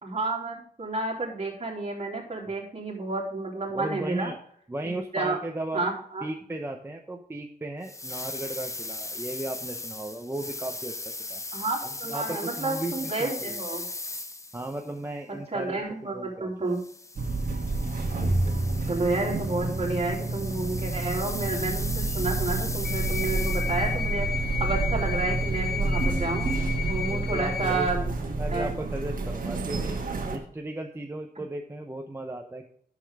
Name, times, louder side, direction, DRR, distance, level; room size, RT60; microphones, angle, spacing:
voice 1, 0.0-4.3 5.1-5.4 5.7-6.3 11.5-13.9 15.5-16.8 18.9-24.3 24.6-26.5 26.8-28.1 28.5-28.7, right 3 dB, 40° right, -2 dB, 3.0 m, -30 dB
voice 2, 3.7-4.4 4.7-5.8 6.2-10.9 11.3-11.4 11.8-13.6 14.5-15.8 16.1-16.5 18.2-18.6 27.1-30.0 30.3-32.7, right 1 dB, 15° right, 2 dB, 0.8 m, -36 dB
sound 1, 7.8-14.8 16.7-24.0, left 2 dB, 20° left, 0.7 m, -38 dB
sound 2, 17.2-30.4, right 3 dB, 60° right, 1.5 m, -29 dB
sound 3, 22.8-27.9, left 8 dB, 75° left, 1.0 m, -34 dB
9.8 x 6.7 x 3.5 m, 0.64 s
wide cardioid pair, 130°, 16 cm